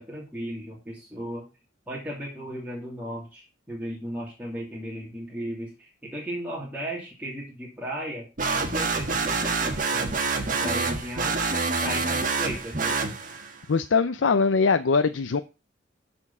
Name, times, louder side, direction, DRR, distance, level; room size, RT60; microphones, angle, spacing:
voice 1, 0.0-1.5 1.9-8.3 8.5-11.3 11.8-13.0, equal, 10° right, -5 dB, 2.7 m, -36 dB
sound 1, 8.4-13.6, right 4 dB, 45° right, 1.5 m, -27 dB
voice 2, 13.7-15.4, left 4 dB, 80° left, 10 dB, 0.5 m, -22 dB
13.5 x 4.5 x 5.5 m, 0.30 s
head